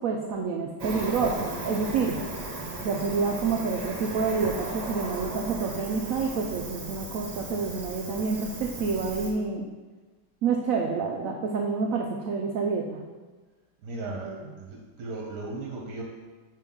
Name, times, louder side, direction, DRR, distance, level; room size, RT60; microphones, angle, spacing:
voice 1, 0.0-2.2 2.8-9.7 10.4-13.0 14.2-14.5, right 5 dB, 75° right, 2 dB, 0.7 m, -28 dB
Cricket, 0.8-9.3, right 2 dB, 45° right, 0.5 m, -36 dB
voice 2, 13.8-14.3 14.6-16.0, right 3 dB, 60° right, -1 dB, 1.2 m, -36 dB
5.9 x 5.2 x 3.7 m, 1.3 s
omnidirectional pair, 2.0 m